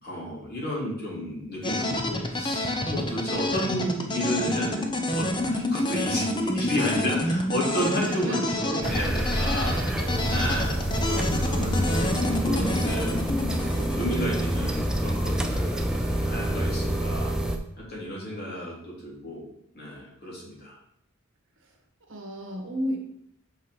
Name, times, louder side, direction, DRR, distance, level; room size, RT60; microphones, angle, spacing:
voice 1, 0.0-4.8 5.2-13.2 13.8-17.4 17.9-19.4 19.7-20.8, equal, 50° left, -5 dB, 3.5 m, -32 dB
sound 1, 1.6-15.5, left 1 dB, 20° left, 0.9 m, -29 dB
voice 2, 7.9-8.4 8.7-8.9 22.1-23.0, equal, 65° right, 2 dB, 1.9 m, -32 dB
sound 2, 8.8-17.6, right 1 dB, 5° right, 0.7 m, -27 dB
6.4 x 6.3 x 5.6 m, 0.73 s
head